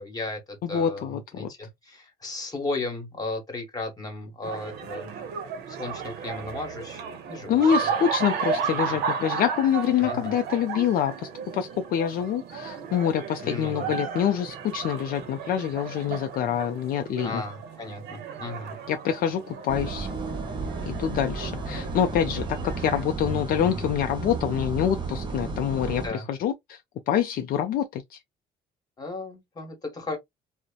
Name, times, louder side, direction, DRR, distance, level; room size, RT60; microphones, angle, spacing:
voice 1, 0.0-5.1 5.7-7.0 7.3-7.9 8.5-8.6 8.9-9.0 10.0-10.4 13.4-14.0 17.2-18.8 20.8-21.0 25.9-26.3 29.0-30.2, left 2 dB, 20° left, 1.1 m, -35 dB
voice 2, 0.6-1.5 7.5-17.4 18.9-20.1 20.9-26.8 27.1-28.2, left 9 dB, 60° left, 0.4 m, -26 dB
sound 1, 4.4-23.0, right 6 dB, 75° right, 0.7 m, -34 dB
sound 2, 19.7-26.1, right 3 dB, 30° right, 0.7 m, -33 dB
2.7 x 2.0 x 2.3 m
cardioid pair, 110°, 17 cm